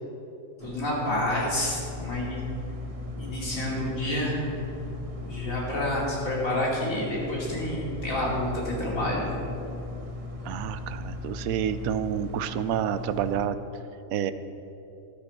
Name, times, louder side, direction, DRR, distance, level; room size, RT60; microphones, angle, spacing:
voice 1, 0.6-2.4 3.1-4.5 5.2-9.3, left 1 dB, 50° left, -4 dB, 3.2 m, -29 dB
sound 1, 0.6-13.5, left 2 dB, 30° right, 0.7 m, -37 dB
voice 2, 10.4-13.6 14.1-14.3, right 9 dB, 70° right, 11 dB, 0.9 m, -29 dB
13.5 x 12.5 x 4.2 m, 2.8 s
omnidirectional pair, 1.8 m